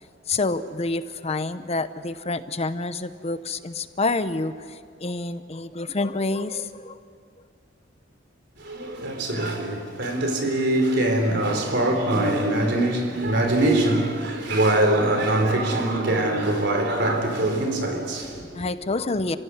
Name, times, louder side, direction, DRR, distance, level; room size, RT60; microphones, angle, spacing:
voice 1, 0.3-7.0 18.5-19.4, left 3 dB, 35° left, 0.8 m, -28 dB
voice 2, 8.6-18.7, right 1 dB, 60° right, 4.0 m, -23 dB
29.0 x 16.5 x 9.8 m
head